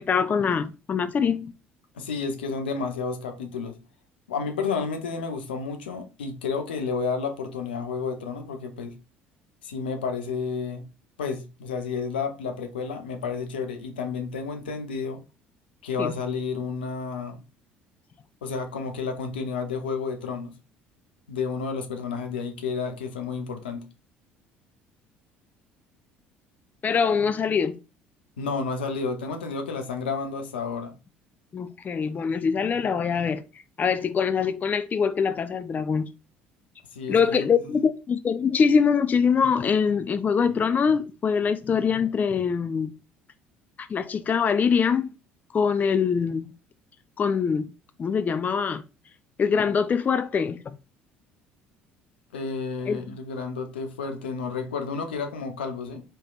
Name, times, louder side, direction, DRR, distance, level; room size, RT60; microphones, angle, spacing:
voice 1, 0.0-1.5 16.0-16.1 26.8-27.8 31.5-33.4 33.8-36.1 37.1-42.9 43.8-45.1 45.5-46.5 47.2-47.7 48.0-48.8 49.4-50.8 52.9-53.2, left 6 dB, 30° left, 0.3 m, -23 dB
voice 2, 1.9-3.8 4.3-8.9 9.6-10.8 11.2-15.2 15.8-17.4 18.4-20.5 21.3-23.8 28.4-30.9 36.9-37.5 52.3-56.0, left 5 dB, 80° left, 0.6 m, -31 dB
4.4 x 3.2 x 2.3 m
hypercardioid pair, 60°, 5 cm